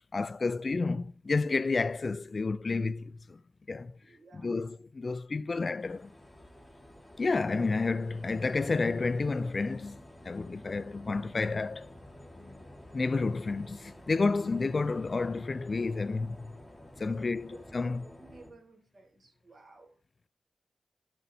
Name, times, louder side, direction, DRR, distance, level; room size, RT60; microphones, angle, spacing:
voice 1, 0.1-3.4 3.7-3.9 4.3-6.1 7.2-11.9 12.9-16.5 17.0-18.0, left 3 dB, 50° left, 0.3 m, -30 dB
voice 2, 4.0-4.8 12.3-12.8 17.0-20.0, right 2 dB, 55° right, 3.5 m, -56 dB
sound 1, 5.8-18.5, left 1 dB, 15° left, 3.7 m, -51 dB
12.0 x 6.2 x 2.7 m
cardioid pair, 50°, 0 cm